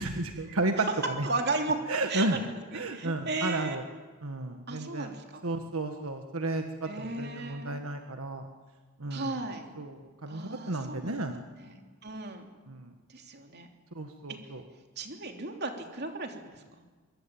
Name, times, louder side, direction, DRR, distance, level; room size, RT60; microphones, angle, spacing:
voice 1, 0.0-1.3 1.9-2.4 2.7-3.8 4.2-5.1 5.4-8.5 9.0-9.4 9.8-11.3 12.7-12.9 13.9-14.6, right 2 dB, 75° right, 5 dB, 1.6 m, -33 dB
voice 2, 1.2-1.8 2.1-3.8 4.7-5.4 6.8-7.8 9.1-9.6 10.3-11.1 11.6-12.5 13.1-13.7 14.3-14.4 15.0-16.5, right 3 dB, 50° right, 3 dB, 3.2 m, -35 dB
23.5 x 23.5 x 8.9 m, 1.4 s
head